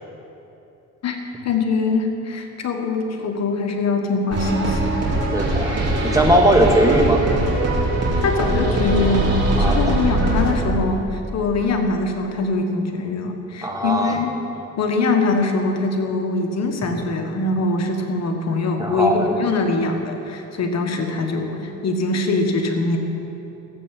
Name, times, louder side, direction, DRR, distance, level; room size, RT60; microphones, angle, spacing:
voice 1, 1.4-4.9 8.2-14.3 14.8-23.0, left 3 dB, 60° left, 3 dB, 1.6 m, -23 dB
sound 1, 4.3-10.5, right 1 dB, 55° right, 3.3 m, -21 dB
voice 2, 5.3-5.8 6.0-7.3 9.6-9.8 13.6-14.2 18.8-19.3, right 1 dB, 10° right, 1 dB, 1.9 m, -18 dB
15.0 x 8.1 x 7.5 m, 3.0 s
cardioid pair, 90°, 30 cm